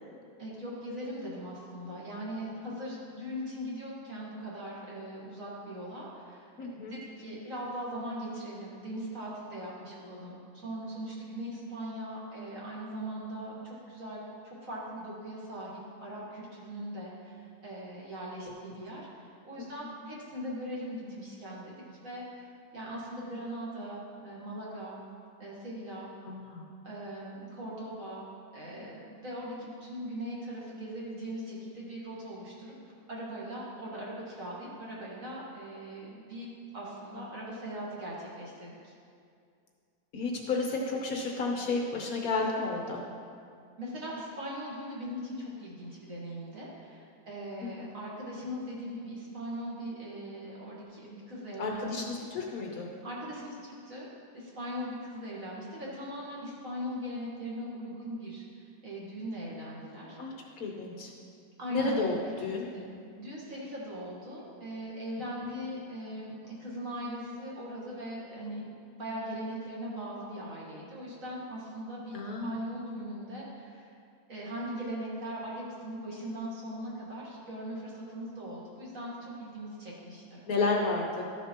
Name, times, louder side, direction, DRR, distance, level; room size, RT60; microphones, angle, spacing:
voice 1, 0.4-25.0 25.4-26.1 26.8-28.3 28.5-32.7 33.1-38.9 43.8-52.0 53.0-54.1 54.3-60.2 61.6-62.0 62.2-72.1 72.4-73.9 74.3-80.4, equal, 45° right, -6 dB, 1.8 m, -40 dB
voice 2, 6.6-7.0 19.6-19.7 26.2-26.6 40.1-43.0 47.6-47.7 51.6-52.9 60.2-61.1 61.7-62.7 72.1-72.6 80.5-81.2, left 3 dB, 60° left, 0 dB, 1.0 m, -32 dB
12.5 x 6.9 x 2.9 m, 2.4 s
omnidirectional pair, 2.2 m